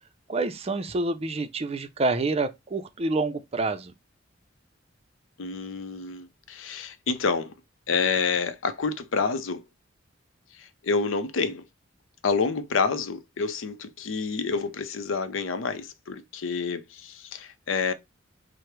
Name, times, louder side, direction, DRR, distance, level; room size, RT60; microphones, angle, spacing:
voice 1, 0.3-3.9, right 2 dB, 30° right, 0.5 m, -27 dB
voice 2, 5.4-7.5 7.9-9.6 10.6-11.6 12.2-17.9, left 5 dB, 85° left, 0.6 m, -28 dB
4.8 x 2.1 x 4.5 m
head